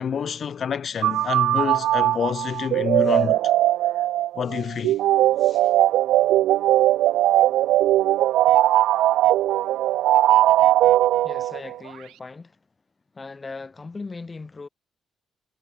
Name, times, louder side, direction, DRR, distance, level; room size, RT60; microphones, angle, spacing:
voice 1, 0.0-3.4 4.4-5.0 5.5-5.6, left 7 dB, 50° left, 1.9 m, -27 dB
sound 1, 1.0-11.8, right 14 dB, 85° right, 0.9 m, -19 dB
voice 2, 11.2-12.6 13.1-14.7, left 3 dB, 25° left, 3.6 m, -38 dB
cardioid pair, 90°, 0 cm